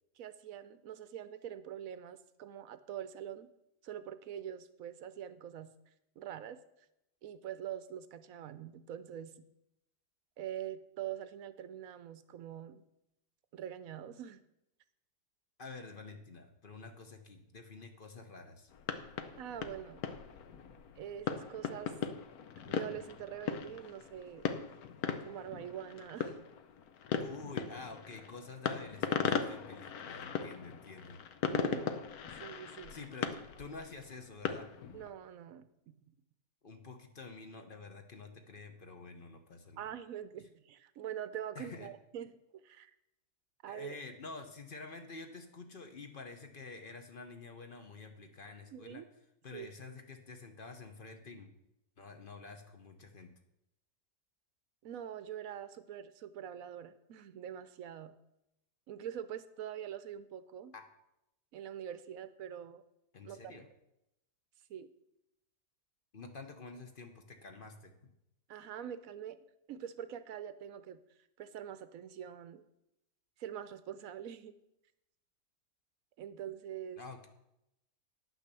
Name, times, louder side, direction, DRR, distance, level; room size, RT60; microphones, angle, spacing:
voice 1, 0.2-3.5 3.8-5.7 6.2-6.6 7.2-9.5 10.4-12.8 13.5-14.4 19.4-20.1 21.0-21.9 22.6-24.5 25.2-26.5 31.5-33.0 34.9-36.0 39.8-42.9 43.6-44.0 48.7-49.1 49.5-49.7 54.8-58.1 58.9-60.7 61.5-62.8 63.2-63.5 64.7-64.9 68.5-71.0 71.4-72.6 73.4-74.6 76.2-77.0, right 10 dB, 65° right, 12 dB, 1.0 m, -44 dB
voice 2, 15.6-18.7 27.2-31.2 32.9-34.7 36.6-39.9 41.5-41.9 43.7-49.0 49.4-51.5 52.0-53.3 60.7-60.8 63.1-63.7 66.1-68.1 77.0-77.3, left 3 dB, 40° left, 5 dB, 1.0 m, -49 dB
sound 1, 18.7-35.1, left 7 dB, 70° left, 1.2 m, -39 dB
10.0 x 6.3 x 6.8 m, 0.85 s
omnidirectional pair, 1.7 m